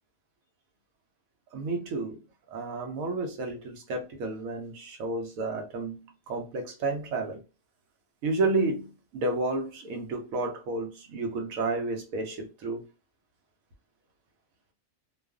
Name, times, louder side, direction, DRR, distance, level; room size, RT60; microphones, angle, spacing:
voice 1, 1.5-2.2 2.5-7.4 8.2-12.9, right 3 dB, 80° right, 1.1 m, -31 dB
2.4 x 2.3 x 2.3 m
omnidirectional pair, 1.4 m